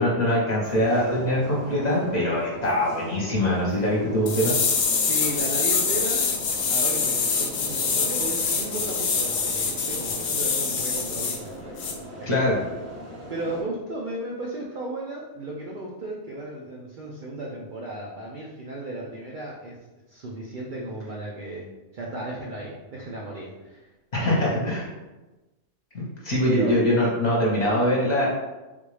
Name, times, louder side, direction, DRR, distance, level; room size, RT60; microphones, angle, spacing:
voice 1, 0.0-4.5 12.3-12.6 24.1-24.8 25.9-28.3, left 1 dB, 35° left, -5 dB, 0.8 m, -23 dB
sound 1, 0.6-13.6, equal, 15° right, 0.7 m, -39 dB
sound 2, 4.3-11.4 11.8-11.9, left 5 dB, 80° left, 0.4 m, -25 dB
voice 2, 5.0-6.3 6.6-11.8 12.2-12.4 13.3-19.8 20.1-23.9 24.3-24.6 26.4-26.8, right 1 dB, 70° right, -3 dB, 0.4 m, -35 dB
3.6 x 2.5 x 3.2 m, 1.1 s
omnidirectional pair, 1.4 m